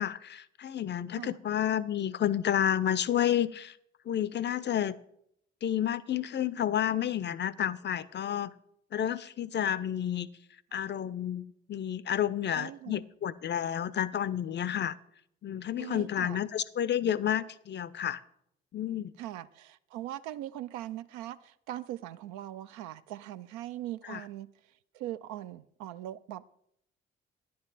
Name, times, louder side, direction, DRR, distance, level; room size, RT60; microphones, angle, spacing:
voice 1, 0.0-3.8 4.1-4.9 5.6-8.5 8.9-10.3 10.7-15.0 15.4-18.2 18.7-19.1 24.1-24.2, left 10 dB, 35° left, 19 dB, 0.5 m, -30 dB
voice 2, 12.5-13.0 15.8-16.4 19.2-24.5 24.9-26.5, right 13 dB, 70° right, 14 dB, 0.5 m, -41 dB
10.5 x 7.7 x 4.0 m, 0.73 s
figure-of-eight pair, 40°, 30 cm